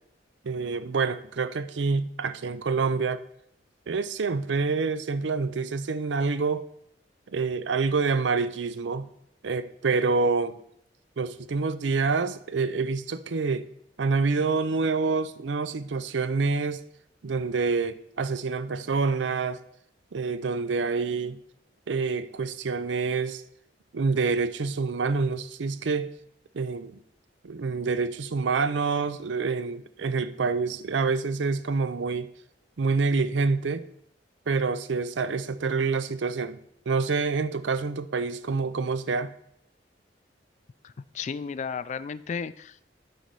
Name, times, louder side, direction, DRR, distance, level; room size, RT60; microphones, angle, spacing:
voice 1, 0.4-3.2 3.9-6.6 7.3-9.1 9.4-10.6 11.2-13.7 14.0-16.8 17.2-19.6 20.1-21.4 21.9-23.4 23.9-26.1 26.5-27.0 27.4-32.3 32.8-33.8 34.5-36.6 36.9-39.3, right 4 dB, 90° right, 0.5 m, -27 dB
voice 2, 40.8-42.9, left 6 dB, 40° left, 0.3 m, -34 dB
9.2 x 4.1 x 5.2 m
head